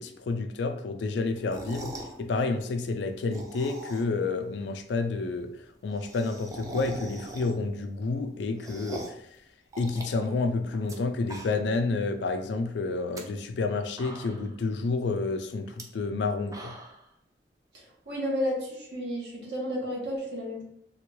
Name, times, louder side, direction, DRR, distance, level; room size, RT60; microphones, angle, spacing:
voice 1, 0.0-9.2 9.8-16.8, left 3 dB, 80° left, 7 dB, 0.4 m, -30 dB
sound 1, 1.4-2.2 3.1-4.3 4.6-4.7 4.9-5.0 5.2-5.3 5.6-7.8 8.2-9.3 9.7-11.0 11.2-11.8 12.2-12.3 12.9-13.2 13.7-13.8 14.0-14.6 15.7-15.8 16.3-17.1, right 1 dB, 20° right, 0.4 m, -42 dB
voice 2, 17.7-20.6, equal, 70° right, -2 dB, 1.1 m, -32 dB
3.5 x 2.2 x 3.0 m, 0.73 s
head